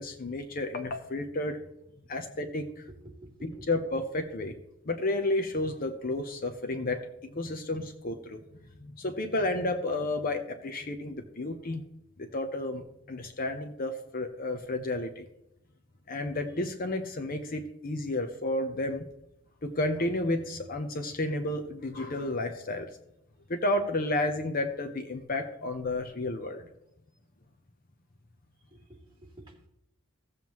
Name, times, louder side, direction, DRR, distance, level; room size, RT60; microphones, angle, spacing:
voice 1, 0.0-1.6 2.1-2.9 3.4-4.5 4.8-8.4 8.8-11.8 12.2-15.2 16.1-19.1 19.6-22.9 23.5-26.7, left 2 dB, 45° left, 8 dB, 0.7 m, -31 dB
voice 2, 2.9-3.7 28.7-29.7, right 1 dB, 20° right, -5 dB, 2.6 m, -50 dB
16.5 x 7.3 x 3.1 m, 0.86 s
head